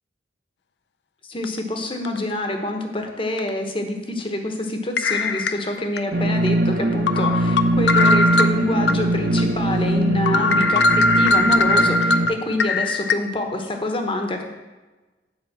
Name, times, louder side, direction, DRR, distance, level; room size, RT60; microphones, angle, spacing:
voice 1, 1.3-14.4, left 1 dB, 30° left, 4 dB, 1.0 m, -26 dB
sound 1, 1.4-1.6 2.0-2.2 3.4-3.5 5.0-6.0 6.5-6.6 7.1-9.0 9.4-9.5 9.9-10.0 10.3-13.1, left 2 dB, 65° left, 0.4 m, -20 dB
sound 2, 6.1-12.3, right 1 dB, 50° right, 0.9 m, -21 dB
8.1 x 5.1 x 7.2 m, 1.2 s
head